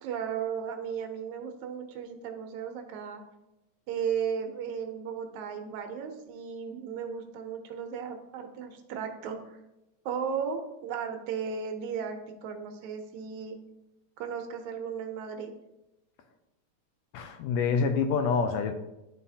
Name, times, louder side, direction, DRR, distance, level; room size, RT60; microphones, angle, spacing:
voice 1, 0.0-3.2 3.9-9.6 10.1-13.6 14.2-15.5, right 7 dB, 80° right, 5 dB, 2.1 m, -35 dB
voice 2, 17.1-18.7, left 5 dB, 80° left, 6 dB, 1.6 m, -26 dB
11.0 x 4.0 x 2.8 m, 0.94 s
omnidirectional pair, 3.3 m